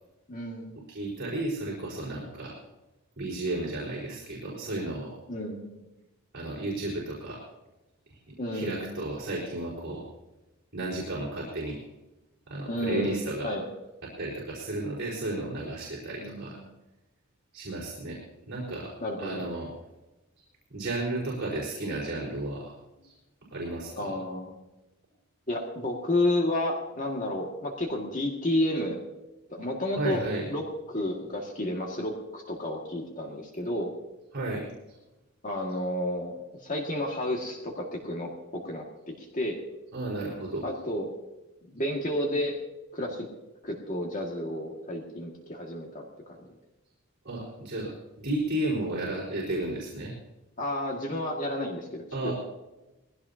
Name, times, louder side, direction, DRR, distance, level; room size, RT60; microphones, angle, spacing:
voice 1, 0.3-0.8 5.3-5.8 8.4-8.9 12.7-13.7 16.2-16.7 19.0-19.4 23.9-24.5 25.5-29.0 29.5-30.2 30.5-34.0 35.4-36.3 36.6-39.6 40.6-41.1 41.7-42.6 42.9-43.3 43.6-46.5 50.6-52.3, left 1 dB, 35° left, 0 dB, 2.0 m, -31 dB
voice 2, 0.9-2.6 3.2-5.2 6.3-7.4 8.3-10.0 10.7-11.8 12.5-13.5 14.0-16.6 17.5-18.9 19.2-19.7 20.7-22.7 23.0-23.1 23.5-24.1 29.9-30.5 34.3-34.7 39.9-40.6 47.2-50.1 52.1-52.3, right 2 dB, 50° right, -6 dB, 4.5 m, -33 dB
21.0 x 16.5 x 2.8 m, 1.0 s
head